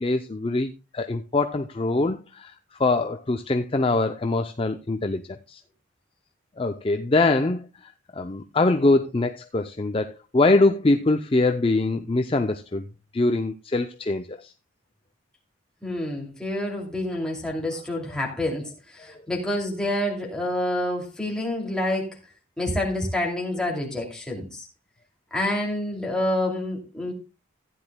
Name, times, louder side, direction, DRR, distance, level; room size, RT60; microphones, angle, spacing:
voice 1, 0.0-2.5 2.8-5.2 5.5-5.6 6.6-12.8 13.1-14.5, left 2 dB, 25° left, 7 dB, 0.5 m, -23 dB
voice 2, 15.8-22.2 22.6-24.7 25.3-27.1, left 1 dB, 5° left, -2 dB, 2.6 m, -28 dB
15.5 x 9.9 x 2.2 m, 0.29 s
head